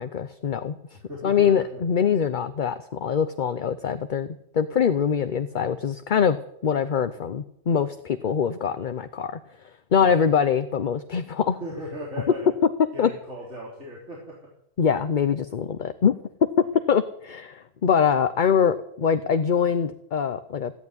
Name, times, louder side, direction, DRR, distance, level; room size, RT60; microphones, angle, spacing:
voice 1, 0.0-0.8 1.2-4.3 4.5-6.4 6.6-9.4 9.9-11.6 13.0-13.1 14.8-16.2 16.6-20.7, left 7 dB, 45° left, 11 dB, 0.8 m, -23 dB
voice 2, 0.9-1.8 10.0-10.2 11.6-12.5 12.9-14.2, equal, 65° right, -4 dB, 4.0 m, -37 dB
16.0 x 9.4 x 9.6 m, 0.74 s
omnidirectional pair, 1.3 m